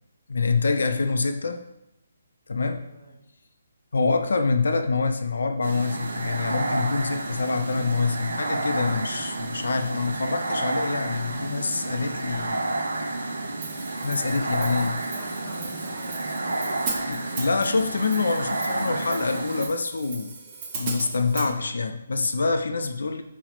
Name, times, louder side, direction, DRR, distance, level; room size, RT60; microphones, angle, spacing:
voice 1, 0.3-1.6 2.5-2.8 3.9-12.6 14.0-14.9 17.1-20.4 20.7-23.2, left 4 dB, 80° left, 6 dB, 0.3 m, -26 dB
voice 2, 2.8-3.2 14.5-17.6, equal, 10° right, -9 dB, 1.1 m, -45 dB
sound 1, 5.6-19.7, right 2 dB, 75° right, 0.5 m, -30 dB
Hi-hat, 13.6-21.5, right 4 dB, 25° right, 0.5 m, -38 dB
5.6 x 2.0 x 3.0 m, 0.86 s
hypercardioid pair, 170°, 0 cm